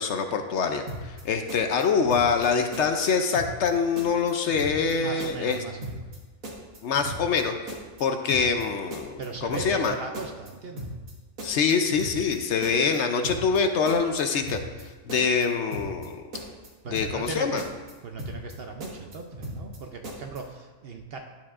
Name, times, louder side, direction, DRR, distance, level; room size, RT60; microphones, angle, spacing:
voice 1, 0.0-5.6 6.8-7.5 8.0-9.9 11.4-14.6 15.0-16.2 16.9-17.6, left 5 dB, 65° left, 6 dB, 0.8 m, -25 dB
sound 1, 0.9-1.2 1.5-2.5 2.7-3.1 3.3-3.7 4.0-4.9 5.2-5.6 5.8-6.2 6.4-7.4 7.7-8.0 8.3-8.7 8.9-9.9 10.1-10.5 10.8-11.1 11.4-12.4 12.6-13.0 13.2-13.6 13.9-14.8 15.1-15.5 15.7-16.1 16.3-17.3 17.6-17.9 18.2-18.6 18.8-19.8 20.0-20.4, right 1 dB, 75° right, 1.9 m, -37 dB
voice 2, 4.9-6.1 9.2-11.0 16.8-17.6 18.0-21.2, right 4 dB, 60° right, 3 dB, 0.7 m, -38 dB
11.5 x 7.2 x 2.5 m, 1.3 s
omnidirectional pair, 1.4 m